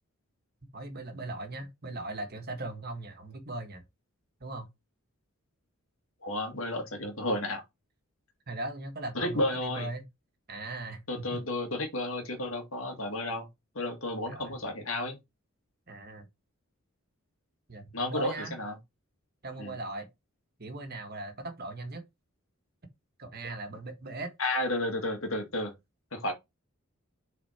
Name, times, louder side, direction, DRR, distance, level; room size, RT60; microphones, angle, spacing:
voice 1, 0.7-3.8 4.4-4.7 8.5-10.0 10.5-11.4 14.3-14.5 15.9-16.3 17.7-18.6 19.4-20.1 20.6-22.0 23.2-24.3, right 2 dB, 45° right, 1.6 m, -39 dB
voice 2, 6.2-7.6 9.1-9.9 11.1-13.5 13.8-15.2 17.9-18.8 19.6-19.8 24.4-25.7 26.1-26.3, left 1 dB, 70° left, 2.1 m, -32 dB
7.0 x 4.3 x 4.3 m
head